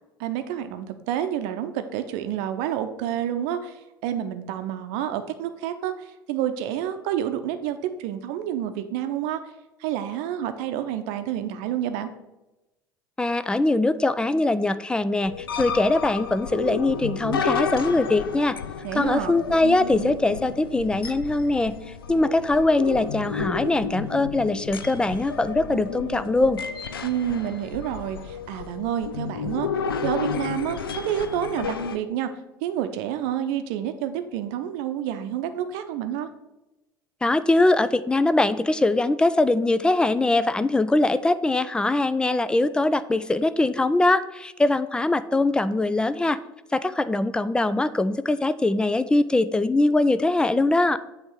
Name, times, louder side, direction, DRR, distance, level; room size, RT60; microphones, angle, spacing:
voice 1, 0.2-9.4 9.8-12.1 18.8-19.3 27.0-29.7 30.0-30.8 31.0-32.3 32.6-36.3, right 10 dB, 55° right, 9 dB, 0.7 m, -29 dB
voice 2, 13.2-18.6 18.9-21.8 22.1-26.6 37.2-46.4 46.7-51.0, left 2 dB, 5° left, 14 dB, 0.4 m, -22 dB
sound 1, 15.2-32.0, left 6 dB, 75° left, 0.5 m, -32 dB
7.9 x 3.4 x 6.4 m, 0.98 s
figure-of-eight pair, 65°, 12 cm